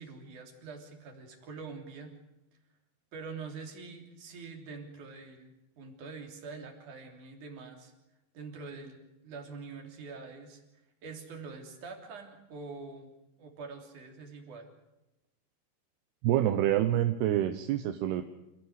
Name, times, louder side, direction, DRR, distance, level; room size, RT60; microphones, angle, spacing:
voice 1, 0.0-2.1 3.1-7.9 8.3-10.6 11.0-13.1 13.4-14.7, right 4 dB, 50° right, 3 dB, 4.5 m, -45 dB
voice 2, 16.2-18.2, right 12 dB, 80° right, 8 dB, 2.9 m, -27 dB
27.5 x 16.5 x 8.1 m, 0.94 s
omnidirectional pair, 4.7 m